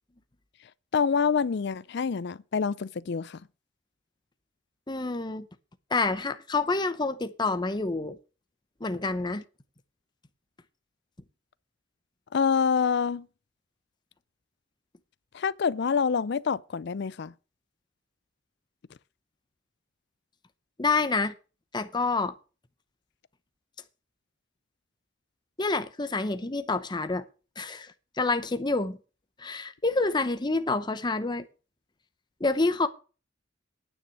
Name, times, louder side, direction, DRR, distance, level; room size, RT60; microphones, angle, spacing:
voice 1, 0.9-3.4 12.3-13.3 15.3-17.3, left 6 dB, 55° left, 0.4 m, -26 dB
voice 2, 4.9-5.5 5.9-8.2 8.8-9.4 20.8-21.3 21.7-22.3 25.6-27.2 27.6-29.0 29.4-31.4 32.4-32.9, left 3 dB, 20° left, 0.7 m, -28 dB
9.5 x 6.1 x 8.0 m
head